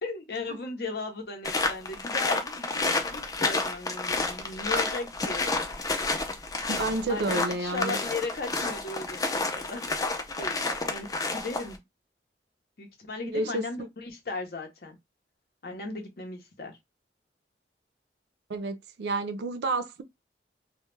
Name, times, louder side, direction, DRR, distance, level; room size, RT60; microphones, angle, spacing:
voice 1, 0.0-5.5 7.1-9.9 10.4-11.8 12.8-15.0 15.6-16.8, left 3 dB, 60° left, 0.7 m, -37 dB
sound 1, 1.4-11.8, left 3 dB, 20° left, 0.3 m, -30 dB
voice 2, 6.7-8.0 13.2-13.9 18.5-20.0, right 2 dB, 70° right, 0.4 m, -30 dB
2.2 x 2.1 x 3.1 m
head